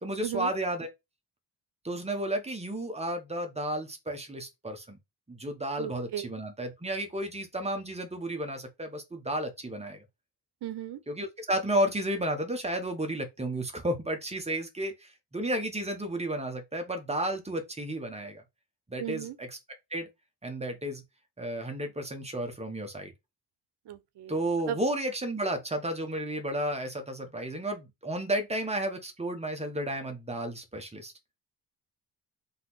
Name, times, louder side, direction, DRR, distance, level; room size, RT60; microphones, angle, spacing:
voice 1, 0.0-0.9 1.8-5.0 5.3-10.0 11.1-18.4 18.9-19.6 19.9-20.1 20.4-21.0 21.4-23.1 24.3-31.1, right 1 dB, 15° right, 0.9 m, -32 dB
voice 2, 5.8-6.3 10.6-11.0 19.0-19.4 23.9-24.3 24.7-24.8, right 11 dB, 75° right, 0.7 m, -35 dB
4.0 x 2.9 x 3.9 m
wide cardioid pair, 145°, 40 cm